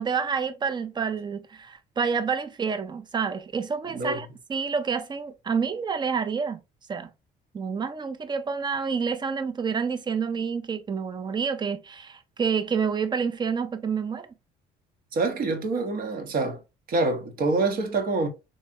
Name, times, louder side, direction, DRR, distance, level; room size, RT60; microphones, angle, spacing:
voice 1, 0.0-6.6 6.9-7.1 7.5-14.3, right 6 dB, 25° right, 0.5 m, -28 dB
voice 2, 3.9-4.2 15.1-16.6 16.9-18.3, right 3 dB, 60° right, 1.1 m, -26 dB
3.3 x 3.2 x 2.7 m
cardioid pair, 110°, 17 cm